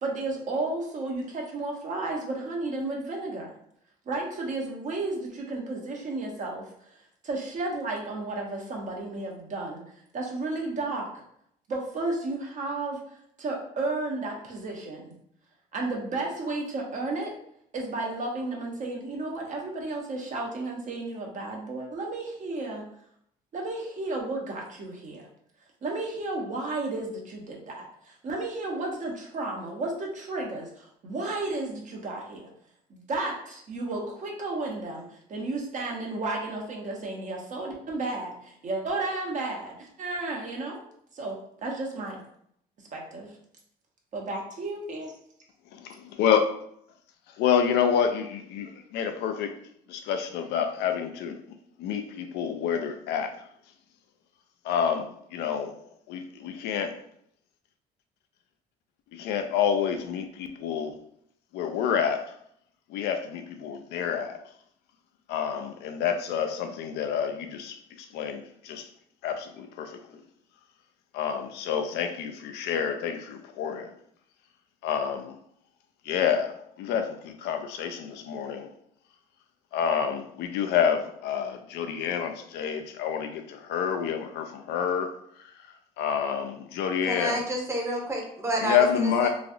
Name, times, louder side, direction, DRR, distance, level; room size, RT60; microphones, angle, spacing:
voice 1, 0.0-3.5 4.1-6.7 7.2-9.8 10.1-11.1 11.7-13.0 13.4-15.2 15.7-17.3 17.7-22.8 23.5-25.2 25.8-32.5 32.9-40.8 41.1-42.2 42.9-43.3 44.1-45.1, right 2 dB, 45° right, 0.8 m, -33 dB
voice 2, 45.7-46.5 47.4-49.6 49.9-51.4 51.8-53.3 54.6-55.7 56.1-57.0 59.1-61.0 61.5-62.2 62.9-64.4 65.3-67.8 68.1-68.9 69.2-70.2 71.1-73.9 74.8-75.4 76.1-78.7 79.7-85.1 86.0-87.4 88.6-89.3, left 8 dB, 80° left, 0.4 m, -28 dB
voice 3, 87.1-89.3, right 1 dB, 15° right, 0.8 m, -29 dB
3.0 x 2.4 x 2.6 m
cardioid pair, 110°, 17 cm